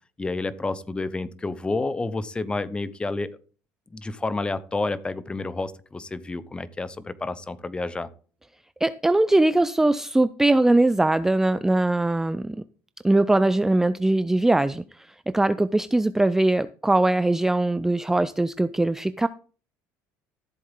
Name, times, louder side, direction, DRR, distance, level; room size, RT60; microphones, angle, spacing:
voice 1, 0.2-3.3 3.9-8.1, left 3 dB, 15° left, 16 dB, 0.8 m, -30 dB
voice 2, 8.8-12.6 13.0-14.8 15.3-19.3, right 2 dB, 5° right, 14 dB, 0.4 m, -21 dB
13.5 x 7.7 x 3.7 m, 0.40 s
cardioid pair, 110°, 6 cm